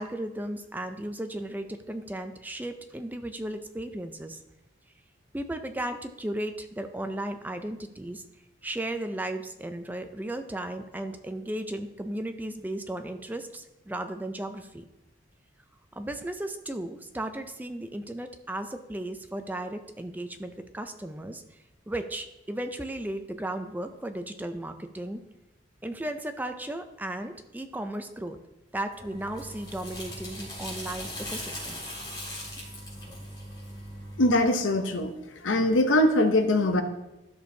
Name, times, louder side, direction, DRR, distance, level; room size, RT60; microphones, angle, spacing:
voice 1, 0.0-4.4 5.3-8.2 8.6-14.8 15.9-21.4 21.9-25.2 25.8-28.4 28.7-31.8, right 1 dB, 10° right, 7 dB, 0.4 m, -35 dB
sound 1, 28.9-34.4, left 1 dB, 25° left, 3.1 m, -39 dB
voice 2, 34.2-35.1 35.4-36.8, left 1 dB, 85° left, 7 dB, 0.8 m, -22 dB
12.5 x 6.3 x 2.7 m, 0.96 s
head